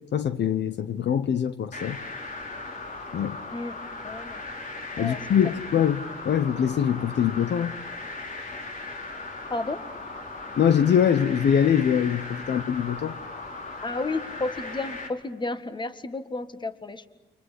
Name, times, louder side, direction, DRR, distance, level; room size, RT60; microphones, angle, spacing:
voice 1, 0.1-2.0 3.1-3.4 5.0-7.8 10.6-13.2, left 8 dB, 60° left, 1.1 m, -23 dB
sound 1, 1.7-15.1, left 2 dB, 40° left, 4.6 m, -38 dB
voice 2, 4.0-4.4 5.0-5.2 9.5-9.8 13.8-17.1, left 3 dB, 25° left, 1.8 m, -32 dB
29.5 x 24.5 x 8.3 m
cardioid pair, 90°, 20 cm